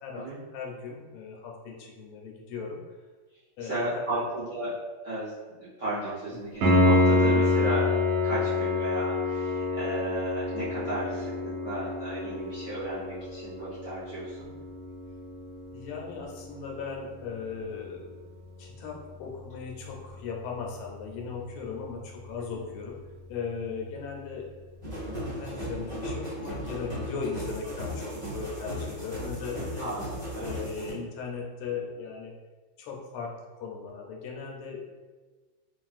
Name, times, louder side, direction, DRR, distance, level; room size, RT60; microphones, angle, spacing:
voice 1, 0.0-2.8 3.6-4.2 6.5-6.6 15.7-18.2 18.6-23.0 23.3-24.4 25.2-29.9 30.4-32.3 32.8-35.0, left 5 dB, 85° left, 0 dB, 1.5 m, -38 dB
voice 2, 3.6-4.7 5.0-7.9 8.2-11.3 11.6-14.5 29.8-30.1 30.3-30.6, right 1 dB, 65° right, -13 dB, 0.7 m, -34 dB
Piano, 6.6-17.3 20.6-20.7, left 2 dB, 85° right, 1.6 m, -27 dB
sound 1, 24.8-30.9, equal, 25° right, 0.7 m, -36 dB
3.6 x 2.4 x 2.4 m, 1.3 s
omnidirectional pair, 2.3 m